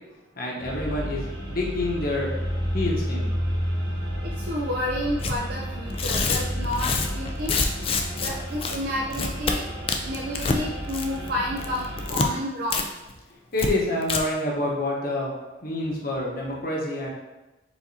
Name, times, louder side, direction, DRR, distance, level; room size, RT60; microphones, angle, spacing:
voice 1, 0.4-2.4 2.7-3.3 13.5-15.3 15.6-17.1, left 1 dB, 50° left, -3 dB, 1.0 m, -27 dB
sound 1, 0.6-12.1, equal, 65° right, 0.9 m, -31 dB
voice 2, 4.2-9.7 10.0-12.9, left 1 dB, 50° right, -2 dB, 0.4 m, -31 dB
Tearing, 5.2-5.4 5.9-8.3 8.6-8.8 9.1-9.6 9.9-10.6 10.9-11.3 11.6-12.3 12.7-12.8 13.1-13.2 13.6-13.7 14.0-14.2, left 4 dB, 30° left, 0.3 m, -26 dB
4.8 x 4.0 x 2.7 m, 1.1 s
head